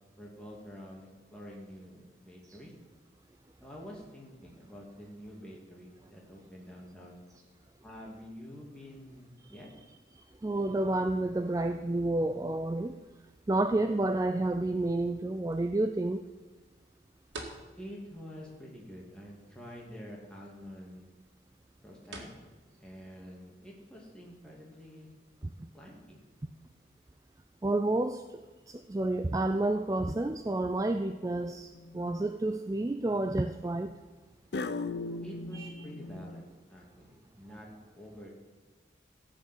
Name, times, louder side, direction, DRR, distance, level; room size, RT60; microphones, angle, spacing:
voice 1, 0.2-2.7 3.6-7.2 7.8-9.7 17.8-21.1 21.8-22.3 22.8-25.1 25.7-26.2 27.7-27.8 35.2-37.7 37.9-38.3, equal, 5° left, -3 dB, 2.4 m, -48 dB
voice 2, 10.4-13.0 13.5-16.2 27.6-28.2 28.7-31.7 31.9-33.9 35.5-35.7, right 2 dB, 20° right, 9 dB, 0.3 m, -30 dB
sound 1, 13.9-26.5, right 2 dB, 85° right, 2.0 m, -54 dB
sound 2, 30.7-31.1 31.7-32.3 34.5-36.4, left 3 dB, 65° left, 0.5 m, -38 dB
15.0 x 5.2 x 8.2 m, 1.3 s
head